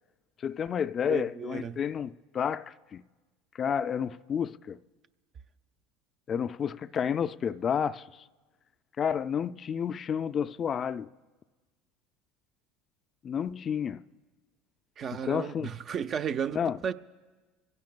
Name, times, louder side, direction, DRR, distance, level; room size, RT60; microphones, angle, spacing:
voice 1, 0.4-3.0 3.5-4.8 6.3-8.2 9.0-11.1 13.2-14.0 15.1-15.7 16.5-16.8, left 7 dB, 40° left, 0.3 m, -30 dB
voice 2, 1.1-1.8 15.0-16.9, right 7 dB, 40° right, 0.5 m, -34 dB
26.0 x 16.0 x 2.2 m
hypercardioid pair, 85°, 0 cm